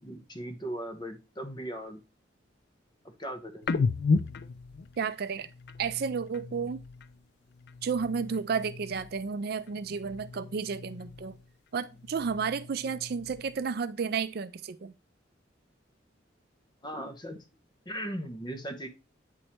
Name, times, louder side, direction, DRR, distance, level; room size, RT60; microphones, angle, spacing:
voice 1, 0.0-2.0 3.2-3.7 16.8-17.4 17.9-18.9, right 1 dB, 25° left, 1.0 m, -38 dB
sound 1, 3.6-7.2 7.5-9.4 9.6-11.5 11.8-13.7, left 4 dB, 60° left, 0.4 m, -35 dB
voice 2, 5.0-5.5 5.8-6.8 7.8-11.4 11.7-14.9, right 5 dB, 55° right, 0.4 m, -32 dB
8.8 x 3.2 x 4.3 m
head